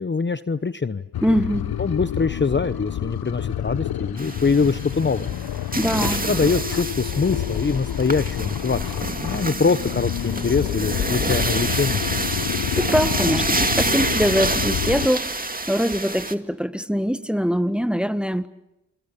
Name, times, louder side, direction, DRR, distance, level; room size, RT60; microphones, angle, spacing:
voice 1, 0.0-1.1 1.8-5.3 6.0-12.0, left 4 dB, 30° left, 0.9 m, -23 dB
sound 1, 1.1-15.1, left 11 dB, 75° left, 0.9 m, -28 dB
voice 2, 1.2-1.8 5.8-6.3 12.8-18.5, equal, 5° right, 1.6 m, -23 dB
sound 2, 4.2-16.3, right 2 dB, 25° right, 2.2 m, -28 dB
28.0 x 23.5 x 7.1 m
cardioid pair, 45°, 37 cm